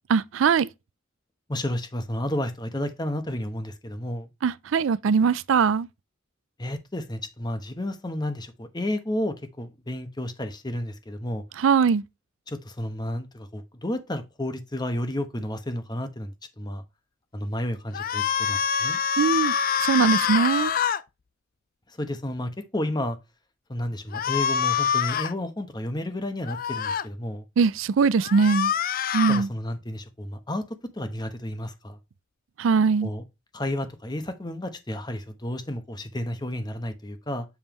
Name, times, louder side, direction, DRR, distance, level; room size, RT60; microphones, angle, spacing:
voice 1, 0.1-0.7 4.4-5.9 11.6-12.0 19.2-19.5 19.8-20.7 27.6-28.7 29.1-29.5 32.6-33.1, right 5 dB, 70° right, 0.4 m, -21 dB
voice 2, 1.5-4.3 6.6-11.4 12.5-16.8 17.3-19.0 22.0-23.2 23.7-27.4 29.3-30.6 30.9-32.0 33.0-33.2 33.5-37.5, left 1 dB, 20° left, 1.0 m, -31 dB
sound 1, 17.9-21.0 24.1-25.3 26.5-27.0 28.2-29.4, left 8 dB, 45° left, 0.4 m, -25 dB
7.2 x 5.4 x 3.0 m
head